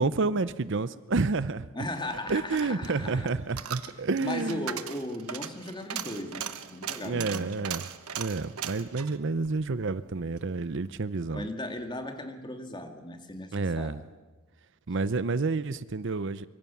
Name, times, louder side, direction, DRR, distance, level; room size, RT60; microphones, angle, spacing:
voice 1, 0.0-1.9 2.3-4.7 7.0-7.8 8.2-11.5 13.5-14.0 14.9-16.5, right 3 dB, 55° right, 15 dB, 0.7 m, -29 dB
voice 2, 1.7-3.3 3.9-7.6 11.3-14.0, left 1 dB, 20° left, 5 dB, 2.3 m, -37 dB
Coin (dropping), 2.0-10.5 10.8-10.9, right 9 dB, 85° right, 1.2 m, -39 dB
24.5 x 24.0 x 7.2 m, 1.3 s
head